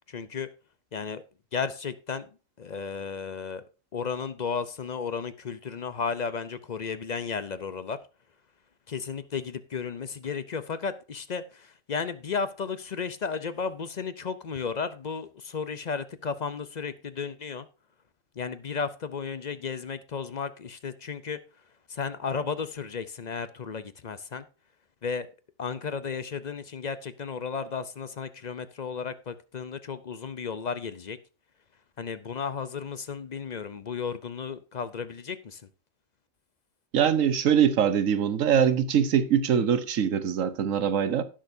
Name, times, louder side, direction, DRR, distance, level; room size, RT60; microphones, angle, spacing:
voice 1, 0.1-0.5 0.9-1.2 1.5-2.3 2.6-3.6 3.9-8.0 8.9-17.7 18.4-21.4 21.9-24.5 25.0-25.3 25.6-31.2 32.0-35.6, left 5 dB, 45° left, 0.5 m, -34 dB
voice 2, 36.9-41.2, right 8 dB, 75° right, 1.3 m, -23 dB
17.5 x 6.3 x 2.7 m
omnidirectional pair, 1.4 m